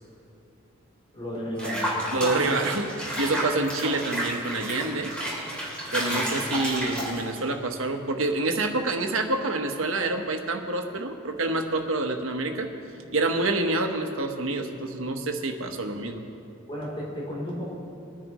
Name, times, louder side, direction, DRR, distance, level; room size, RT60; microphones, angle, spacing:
voice 1, 1.1-1.9 6.1-6.3 16.7-17.7, equal, 25° left, -5 dB, 3.4 m, -33 dB
Water / Bathtub (filling or washing), 1.6-7.5, equal, 5° left, 3.1 m, -31 dB
voice 2, 2.1-5.1 5.9-12.7 13.1-16.2, right 2 dB, 90° right, 4 dB, 1.2 m, -27 dB
22.5 x 10.0 x 3.1 m, 2.7 s
head